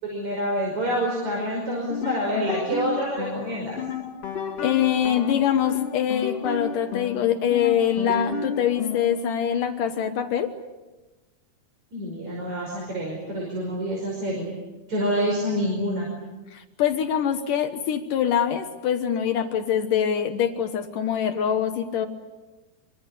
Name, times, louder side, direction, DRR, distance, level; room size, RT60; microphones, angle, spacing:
voice 1, 0.0-3.8 11.9-14.5 14.9-16.1, equal, 35° right, -1 dB, 6.4 m, -27 dB
sound 1, 1.8-9.2, left 6 dB, 40° left, 2.6 m, -32 dB
voice 2, 4.6-10.5 16.5-22.1, left 9 dB, 75° left, 7 dB, 1.9 m, -24 dB
25.0 x 25.0 x 8.4 m, 1.1 s
omnidirectional pair, 5.6 m